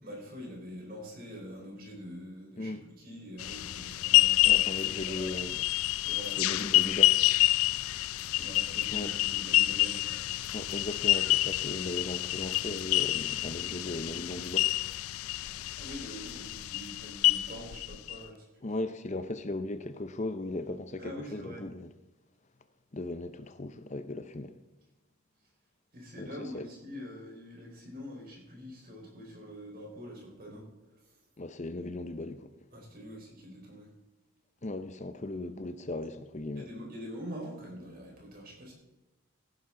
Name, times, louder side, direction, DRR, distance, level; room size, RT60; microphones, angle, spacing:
voice 1, 0.0-5.3 6.0-7.0 8.4-10.3 15.4-18.5 21.0-21.6 25.9-31.2 32.7-33.9 36.6-38.7, equal, 40° right, 4.4 m, -45 dB
sound 1, 3.4-18.2, left 16 dB, 75° left, 0.4 m, -28 dB
voice 2, 4.4-5.6 6.4-7.2 8.9-9.1 10.5-14.7 18.6-21.9 22.9-24.5 26.2-26.7 31.4-32.5 34.6-36.7, left 2 dB, 30° left, 0.6 m, -37 dB
15.5 x 10.5 x 3.8 m
head